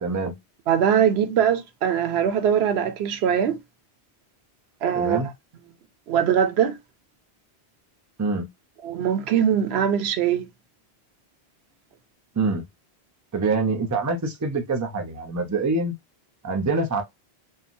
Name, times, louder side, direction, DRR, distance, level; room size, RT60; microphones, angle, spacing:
voice 1, 0.0-0.4 4.9-5.3 8.2-8.5 12.4-12.6 13.3-15.9 16.4-17.0, right 3 dB, 25° right, 0.4 m, -25 dB
voice 2, 0.7-3.6 4.8-5.3 6.1-6.8 8.8-10.5, right 8 dB, 80° right, 0.8 m, -22 dB
2.9 x 2.3 x 2.4 m
omnidirectional pair, 1.1 m